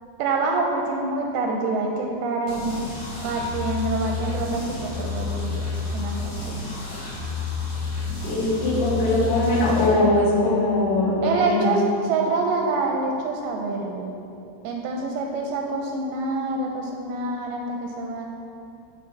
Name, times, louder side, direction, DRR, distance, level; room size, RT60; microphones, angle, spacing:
voice 1, 0.2-2.8 3.2-6.7 11.2-14.1 14.6-18.2, right 3 dB, 85° right, 1 dB, 2.3 m, -26 dB
sound 1, 2.5-9.8, left 4 dB, 50° left, 3.2 m, -30 dB
voice 2, 8.2-11.7, left 2 dB, 75° left, -4 dB, 3.4 m, -21 dB
12.5 x 5.7 x 3.3 m, 2.6 s
omnidirectional pair, 4.8 m